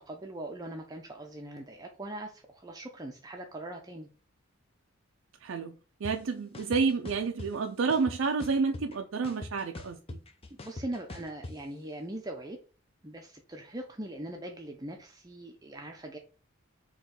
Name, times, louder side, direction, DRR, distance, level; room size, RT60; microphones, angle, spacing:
voice 1, 0.1-4.1 10.5-12.6 13.0-16.2, right 1 dB, 20° right, 0.6 m, -41 dB
voice 2, 5.4-10.2, right 4 dB, 80° right, 0.5 m, -30 dB
sound 1, 6.0-6.1 6.5-7.5 7.9-9.0 9.2-11.5, left 2 dB, 30° left, 0.6 m, -42 dB
4.5 x 3.0 x 3.7 m
head